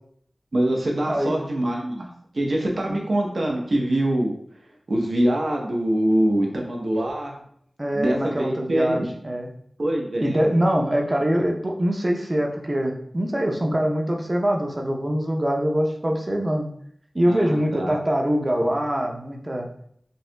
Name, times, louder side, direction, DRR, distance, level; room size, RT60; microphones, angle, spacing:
voice 1, 0.5-2.1 2.3-4.3 4.9-7.4 7.9-9.1 9.8-10.4 17.3-17.9, right 1 dB, 65° right, 0 dB, 0.8 m, -24 dB
voice 2, 7.8-9.5 10.2-16.7 17.1-19.7, equal, 30° right, 1 dB, 0.6 m, -23 dB
5.3 x 2.8 x 2.2 m, 0.67 s
wide cardioid pair, 70°, 0 cm